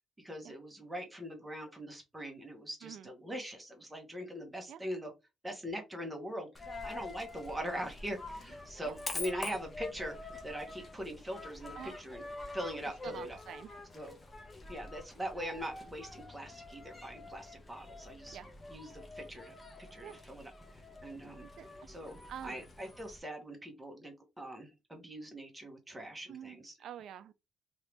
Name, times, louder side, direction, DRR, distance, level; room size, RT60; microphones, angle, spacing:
voice 1, 0.2-5.1 5.4-12.2 12.5-13.4 13.9-14.1 14.7-18.4 18.7-19.5 19.9-21.5 21.9-26.7, equal, 10° right, 1.0 m, -42 dB
Coin (dropping), 6.5-23.2, left 2 dB, 20° left, 0.8 m, -46 dB
voice 2, 13.0-13.7 18.3-18.5 20.0-20.3 21.4-21.7 22.3-22.6 26.3-27.3, right 9 dB, 65° right, 0.4 m, -47 dB
2.9 x 2.7 x 3.3 m
cardioid pair, 135°, 0 cm